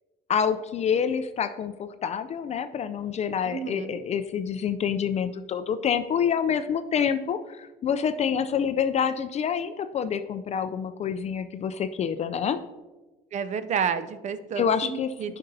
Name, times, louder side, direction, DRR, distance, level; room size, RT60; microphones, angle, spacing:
voice 1, 0.3-12.6 14.6-15.4, left 7 dB, 40° left, 11 dB, 0.4 m, -27 dB
voice 2, 3.4-4.0 13.3-15.4, right 7 dB, 45° right, 12 dB, 0.5 m, -30 dB
9.7 x 5.4 x 2.7 m, 1.1 s
cardioid pair, 110°, 17 cm